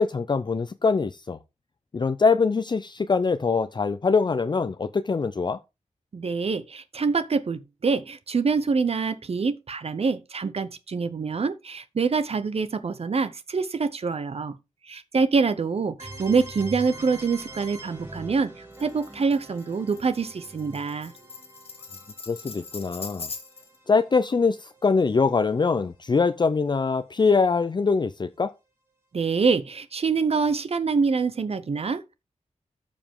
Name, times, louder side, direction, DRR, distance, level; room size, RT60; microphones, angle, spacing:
voice 1, 0.0-1.4 1.9-5.6 22.3-23.3 23.9-28.5, left 4 dB, 35° left, 0.5 m, -23 dB
voice 2, 6.1-14.6 14.9-18.5 18.8-21.1 29.1-32.1, right 5 dB, 55° right, 0.8 m, -25 dB
sound 1, 16.0-25.7, right 1 dB, 20° right, 3.8 m, -44 dB
Tambourine, 18.7-23.8, left 4 dB, 50° left, 1.8 m, -41 dB
13.5 x 5.2 x 3.7 m
wide cardioid pair, 90°, 13 cm